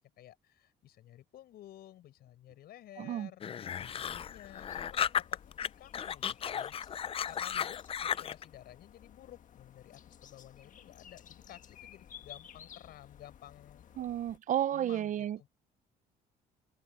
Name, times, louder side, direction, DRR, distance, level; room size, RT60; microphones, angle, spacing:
voice 1, 0.0-6.7 7.3-14.2 14.7-15.5, left 13 dB, 70° left, 6.9 m, -54 dB
voice 2, 3.0-3.3 14.0-15.5, right 11 dB, 50° right, 0.6 m, -32 dB
sound 1, 3.4-5.7 5.9-8.4, left 8 dB, 35° left, 0.5 m, -34 dB
sound 2, 3.7-14.4, left 9 dB, 50° left, 1.4 m, -55 dB
cardioid pair, 110°, 17 cm